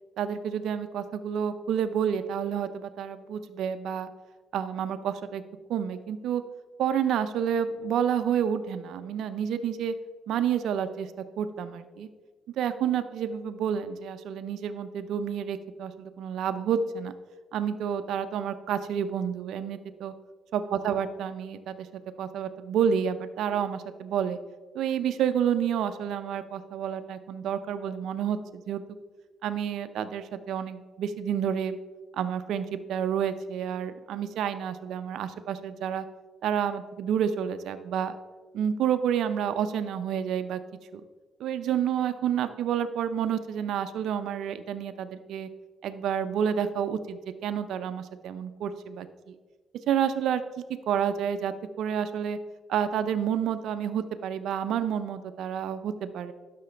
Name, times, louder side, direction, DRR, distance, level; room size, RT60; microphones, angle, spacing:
voice 1, 0.2-4.1 4.5-5.4 5.7-6.4 6.8-9.9 10.3-11.1 11.4-12.1 12.6-17.1 17.5-20.1 20.5-21.9 22.2-24.4 24.7-28.8 29.4-31.8 32.1-36.0 36.4-38.2 38.5-40.6 40.9-41.0 41.4-45.5 45.8-49.3 49.9-50.4 50.9-52.4 52.7-56.3, right 8 dB, 80° right, 10 dB, 0.4 m, -29 dB
11.5 x 5.8 x 3.3 m, 1.4 s
cardioid pair, 90°, 0 cm